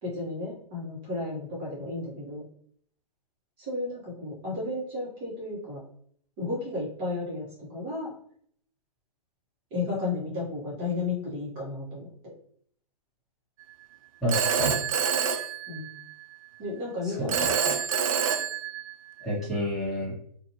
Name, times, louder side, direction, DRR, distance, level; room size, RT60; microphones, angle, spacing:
voice 1, 0.0-2.4 3.6-5.8 6.4-7.4 7.7-8.1 9.7-12.3 15.7-15.9 16.6-17.8, left 3 dB, 25° right, -7 dB, 1.2 m, -33 dB
voice 2, 14.2-14.8 17.0-17.5 19.2-20.1, equal, ahead, -12 dB, 1.4 m, -29 dB
Telephone, 14.3-16.2 17.3-19.2, right 7 dB, 55° right, 0.4 m, -27 dB
2.6 x 2.5 x 2.9 m, 0.63 s
hypercardioid pair, 130°, 21 cm